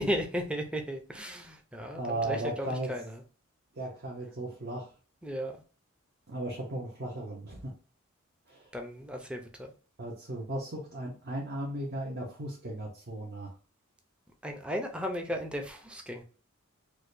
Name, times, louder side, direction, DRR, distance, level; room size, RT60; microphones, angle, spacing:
voice 1, 0.0-3.2 5.2-5.6 8.7-9.7 14.4-16.2, equal, 5° right, 0.5 m, -35 dB
voice 2, 1.9-2.9 3.7-4.9 6.3-7.7 8.5-8.7 10.0-13.5, right 1 dB, 50° right, 0.8 m, -36 dB
4.7 x 2.2 x 2.5 m
head